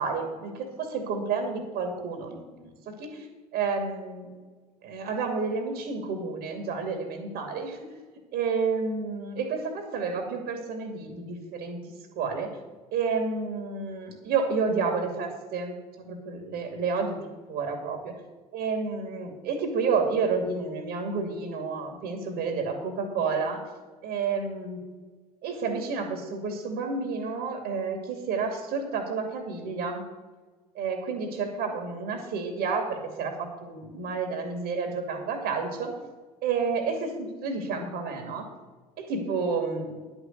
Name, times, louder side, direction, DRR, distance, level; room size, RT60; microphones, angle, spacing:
voice 1, 0.0-2.7 3.0-3.3 3.5-4.3 4.8-7.8 8.3-11.8 12.2-12.5 12.9-17.2 17.5-18.1 18.5-23.6 24.0-24.8 25.4-30.0 30.7-35.9 36.4-38.5 39.0-39.9, right 5 dB, 55° right, 5 dB, 2.5 m, -30 dB
11.0 x 6.4 x 7.9 m, 1.3 s
figure-of-eight pair, 60°, 20 cm